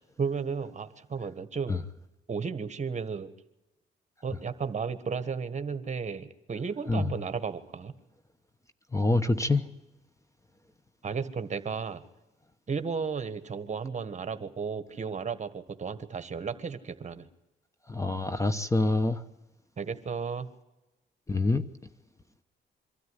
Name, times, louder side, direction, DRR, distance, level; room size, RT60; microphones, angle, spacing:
voice 1, 0.2-1.8 2.3-3.3 4.2-7.9 11.0-12.0 12.7-17.3 19.8-20.5, right 5 dB, 35° right, 1.5 m, -34 dB
voice 2, 8.9-9.7 17.9-19.2 21.3-21.6, left 2 dB, 15° left, 1.1 m, -26 dB
24.0 x 13.5 x 9.8 m
cardioid pair, 90°, 20 cm